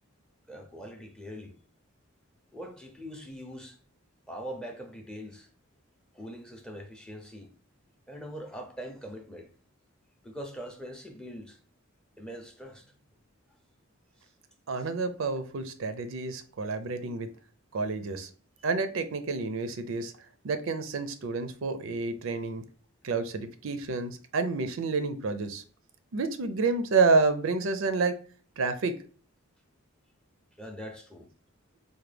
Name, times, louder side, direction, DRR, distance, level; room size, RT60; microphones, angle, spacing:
voice 1, 0.5-1.5 2.5-3.8 4.3-5.5 6.1-7.5 8.1-9.5 10.2-11.6 12.2-12.9 14.8-14.9 18.6-18.7 30.5-31.3, equal, 5° left, 0.5 m, -42 dB
voice 2, 14.7-17.3 17.7-18.3 18.6-20.1 20.4-22.6 23.0-25.6 26.1-28.2 28.6-28.9, right 4 dB, 65° right, 0.4 m, -29 dB
4.5 x 2.2 x 3.3 m
head